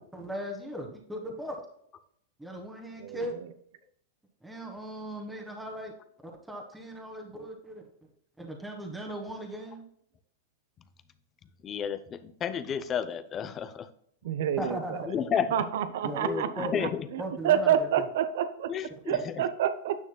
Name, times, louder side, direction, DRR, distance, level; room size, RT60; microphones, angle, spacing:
voice 1, 0.1-1.6 2.4-3.3 4.4-5.9 6.2-7.8 8.4-9.8 14.6-15.3 16.0-16.9 17.2-18.0 18.9-19.3, right 1 dB, 5° right, 0 dB, 1.5 m, -38 dB
voice 2, 11.6-13.9 15.1-15.5 16.2-17.1 18.7-19.2, left 8 dB, 30° left, 13 dB, 0.7 m, -31 dB
voice 3, 14.2-15.0 15.5-18.7 19.1-20.0, right 9 dB, 65° right, 12 dB, 0.8 m, -28 dB
9.8 x 6.3 x 2.3 m, 0.67 s
hypercardioid pair, 110°, 0 cm